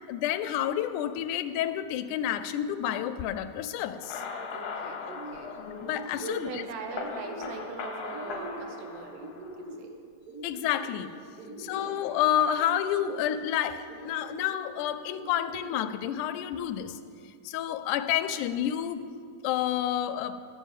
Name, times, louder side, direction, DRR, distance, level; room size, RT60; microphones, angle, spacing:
voice 1, 0.1-4.2 5.8-6.6 10.4-11.1 11.6-17.0 17.5-19.0 19.4-20.4, left 11 dB, 85° left, 11 dB, 2.1 m, -29 dB
sound 1, 3.9-9.7, left 5 dB, 65° left, 1.8 m, -39 dB
sound 2, 4.0-4.5 4.9-5.5 5.8-6.6 6.9-7.6 8.0-8.8 9.1-9.9 10.2-11.0 11.4-12.1 12.6-13.3 13.9-14.5 15.1-15.9, right 2 dB, 60° right, 0.9 m, -44 dB
voice 2, 4.5-5.6 6.2-9.9 11.4-11.7, right 4 dB, 85° right, 4 dB, 2.6 m, -41 dB
12.5 x 6.3 x 7.3 m, 2.2 s
omnidirectional pair, 3.5 m